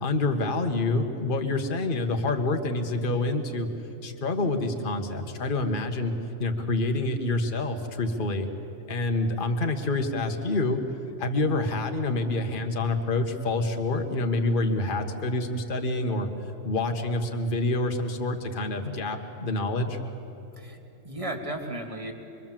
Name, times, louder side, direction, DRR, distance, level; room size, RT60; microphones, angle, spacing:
voice 1, 0.0-3.7 4.0-6.1 6.4-8.5 8.9-10.8 11.2-16.3 16.6-20.0, left 2 dB, 35° left, 5 dB, 1.5 m, -27 dB
voice 2, 20.6-22.1, right 1 dB, 20° right, 3 dB, 2.2 m, -35 dB
25.0 x 23.5 x 7.5 m, 2.9 s
omnidirectional pair, 1.7 m